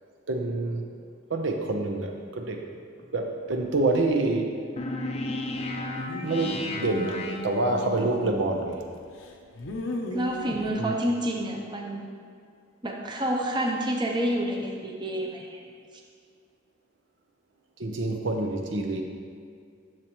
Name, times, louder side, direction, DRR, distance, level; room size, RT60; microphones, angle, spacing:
voice 1, 0.3-0.8 1.3-2.6 3.1-4.5 6.2-7.2 7.4-8.8 10.8-10.9 17.8-19.0, right 2 dB, 75° right, 2 dB, 0.8 m, -27 dB
sound 1, 4.8-8.0, left 2 dB, 30° left, 0.5 m, -34 dB
sound 2, 6.0-8.8 9.2-10.7, equal, 80° left, 0.8 m, -36 dB
voice 2, 10.1-12.1 12.8-15.6, right 1 dB, 25° right, 0 dB, 0.7 m, -28 dB
10.5 x 6.7 x 3.1 m, 2.2 s
head